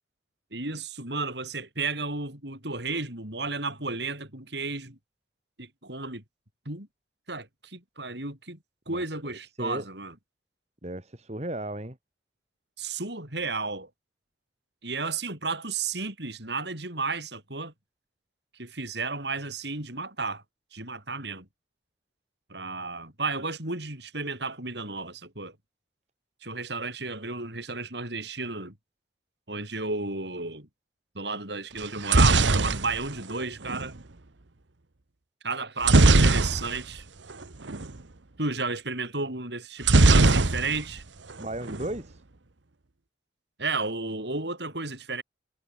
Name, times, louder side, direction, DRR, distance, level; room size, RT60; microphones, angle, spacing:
voice 1, 0.5-5.0 5.6-6.2 6.7-6.9 7.3-8.6 8.9-10.1 12.8-13.9 14.8-17.7 18.6-20.4 20.7-21.5 22.5-25.6 26.4-28.7 29.5-30.7 31.1-34.0 35.4-37.1 38.4-41.0 43.6-45.2, right 3 dB, 65° right, 7.5 m, -33 dB
voice 2, 8.9-9.8 10.8-12.0 41.4-42.2, right 1 dB, 35° right, 2.4 m, -36 dB
sound 1, 31.8-33.9 35.8-37.0 37.3-37.4 37.7-37.9 39.8-41.0 41.3-41.9, right 3 dB, 80° right, 1.3 m, -20 dB
head